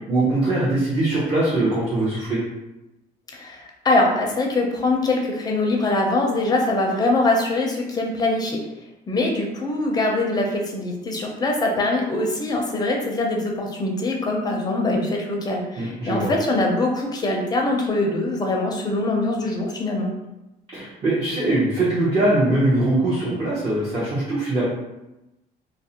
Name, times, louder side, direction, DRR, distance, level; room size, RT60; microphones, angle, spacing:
voice 1, 0.1-2.4 15.8-16.3 20.7-24.6, right 2 dB, 35° right, -9 dB, 0.7 m, -22 dB
voice 2, 3.3-8.6 9.1-20.1, left 2 dB, 20° left, 0 dB, 0.5 m, -23 dB
2.5 x 2.0 x 2.7 m, 0.96 s
cardioid pair, 115°, 18 cm